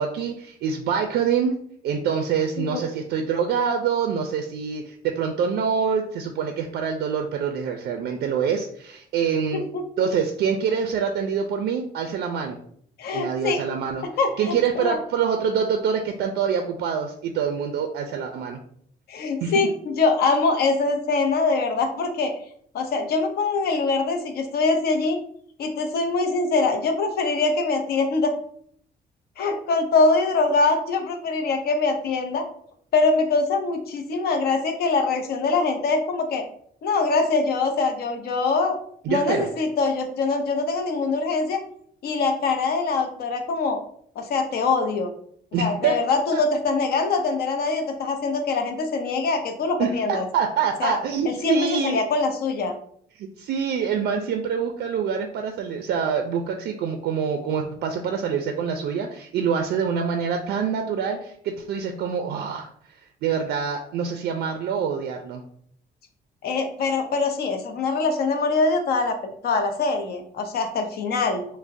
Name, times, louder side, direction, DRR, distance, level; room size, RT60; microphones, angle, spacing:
voice 1, 0.0-9.7 10.0-12.6 13.1-14.1 14.4-18.6 19.4-19.5 39.0-39.5 45.5-46.0 46.3-46.4 49.8-52.0 53.2-62.7 63.0-65.4, right 6 dB, 80° right, 5 dB, 0.4 m, -25 dB
voice 2, 13.0-13.6 14.2-15.0 19.1-22.3 22.7-25.2 25.6-28.3 29.4-32.4 32.9-36.4 36.8-38.8 39.1-41.6 42.0-43.8 44.2-45.1 45.6-50.2 50.8-51.0 51.3-52.8 66.4-71.5, left 3 dB, 65° left, 5 dB, 0.6 m, -23 dB
4.9 x 2.1 x 2.5 m, 0.64 s
cardioid pair, 160°, 17 cm